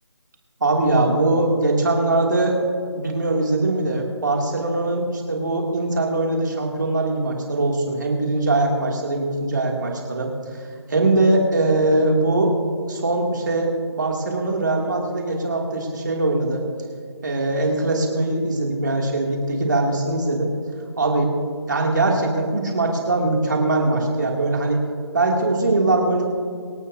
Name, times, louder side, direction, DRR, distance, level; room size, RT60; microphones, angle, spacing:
voice 1, 0.6-2.6 2.9-10.3 10.9-12.5 12.9-16.6 17.2-20.5 21.0-21.3 21.7-24.8 25.1-26.3, right 2 dB, 40° right, 0 dB, 2.6 m, -21 dB
26.5 x 13.0 x 2.8 m, 2.1 s
figure-of-eight pair, 180°, 15 cm